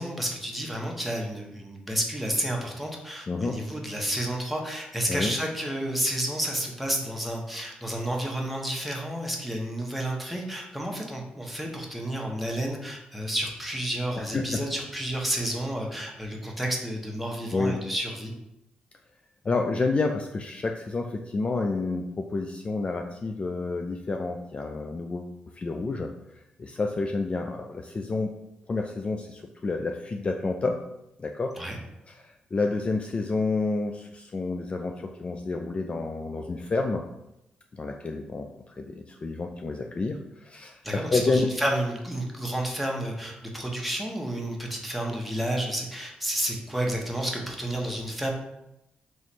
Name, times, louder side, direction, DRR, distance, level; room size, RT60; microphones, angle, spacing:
voice 1, 0.0-18.3 31.6-31.8 40.8-48.3, right 1 dB, ahead, -1 dB, 1.1 m, -31 dB
voice 2, 3.3-3.6 5.1-5.3 14.2-14.6 17.5-17.8 19.4-26.1 26.6-28.3 28.7-30.8 31.2-31.5 32.1-37.0 37.7-38.5 38.8-41.5, left 3 dB, 35° left, 3 dB, 0.4 m, -29 dB
3.1 x 3.0 x 4.3 m, 0.86 s
supercardioid pair, 55°, 3 cm